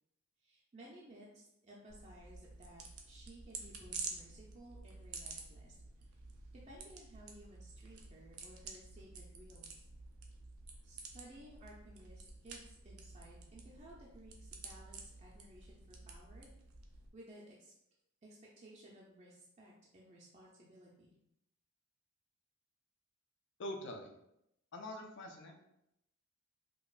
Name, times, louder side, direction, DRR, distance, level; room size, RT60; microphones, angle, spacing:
voice 1, 0.4-6.1 6.5-9.9 10.8-16.5 17.1-17.7 18.2-21.1, right 1 dB, 30° right, -4 dB, 0.5 m, -57 dB
sound 1, 1.9-17.1, right 4 dB, 85° right, 0.6 m, -50 dB
voice 2, 23.6-24.1 24.7-25.6, left 1 dB, 55° left, 3 dB, 0.5 m, -44 dB
5.2 x 2.3 x 2.4 m, 0.81 s
head